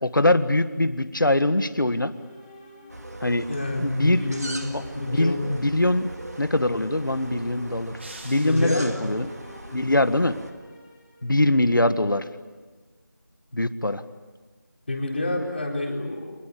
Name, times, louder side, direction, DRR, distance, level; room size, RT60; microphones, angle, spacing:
voice 1, 0.0-2.1 3.2-3.5 3.8-4.2 4.7-6.1 6.4-7.9 8.2-9.3 9.7-10.4 11.2-12.2 13.5-14.0, left 1 dB, 80° left, 12 dB, 1.7 m, -22 dB
sound 1, 1.7-11.9, equal, 15° left, 4.6 m, -50 dB
sound 2, 2.9-10.5, right 1 dB, 55° right, 2.3 m, -40 dB
voice 2, 3.5-5.4 8.4-9.1 14.9-16.3, left 1 dB, 35° left, 0 dB, 4.3 m, -28 dB
sound 3, 8.0-9.3, right 2 dB, 35° right, 2.8 m, -45 dB
27.0 x 21.0 x 8.6 m, 1.3 s
figure-of-eight pair, 175°, 11 cm